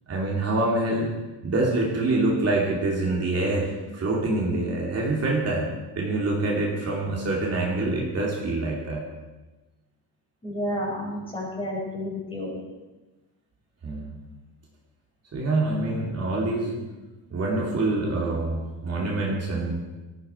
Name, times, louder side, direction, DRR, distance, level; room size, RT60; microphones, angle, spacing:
voice 1, 0.1-1.1 1.4-5.7 6.0-9.0 13.8-14.2 15.3-16.8 17.3-19.8, right 2 dB, 35° right, -3 dB, 2.8 m, -25 dB
voice 2, 10.4-12.6, left 1 dB, 10° left, -3 dB, 5.2 m, -31 dB
19.0 x 14.0 x 4.6 m, 1.1 s
cardioid pair, 165°, 42 cm